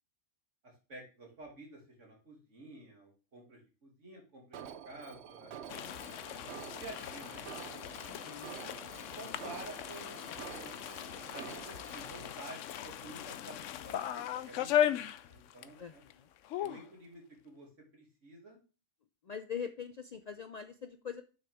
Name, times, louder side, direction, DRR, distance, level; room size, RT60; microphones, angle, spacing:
voice 1, 0.9-4.6 4.8-5.5 6.6-7.5 8.5-8.7 9.1-10.8 11.3-16.0 16.6-18.6, right 2 dB, 85° right, -1 dB, 2.9 m, -51 dB
Alarm, 4.5-12.3, right 8 dB, 65° right, 0.9 m, -48 dB
sound 1, 5.7-15.8 16.1-16.2 16.4-16.9, left 11 dB, 90° left, 0.9 m, -37 dB
voice 2, 8.0-8.6 15.8-16.3 19.2-21.2, left 7 dB, 60° left, 9 dB, 0.4 m, -43 dB
7.4 x 6.1 x 3.5 m, 0.34 s
omnidirectional pair, 1.2 m